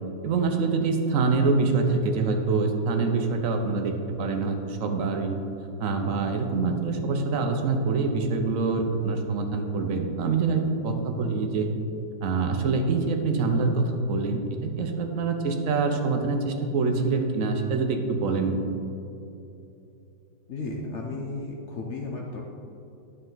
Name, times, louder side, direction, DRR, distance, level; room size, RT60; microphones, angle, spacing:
voice 1, 0.2-5.4 5.8-11.7 12.2-18.6, right 4 dB, 65° right, 4 dB, 0.8 m, -25 dB
voice 2, 20.5-22.4, left 3 dB, 70° left, 0 dB, 0.6 m, -34 dB
9.5 x 6.6 x 3.9 m, 2.8 s
omnidirectional pair, 2.1 m